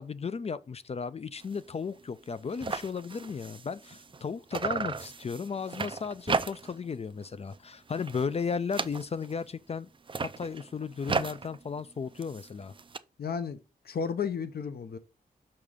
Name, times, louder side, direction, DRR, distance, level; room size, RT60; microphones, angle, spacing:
voice 1, 0.0-9.9 10.4-12.7, left 5 dB, 40° left, 0.4 m, -35 dB
sound 1, 1.4-1.6 2.0-2.1 2.3-4.2 4.5-6.9 7.2-7.6 7.9-9.4 9.9-13.0, right 4 dB, 30° right, 0.4 m, -35 dB
voice 2, 13.2-13.6 13.8-15.0, left 6 dB, 75° left, 0.7 m, -33 dB
6.6 x 5.9 x 3.6 m
wide cardioid pair, 120°, 16 cm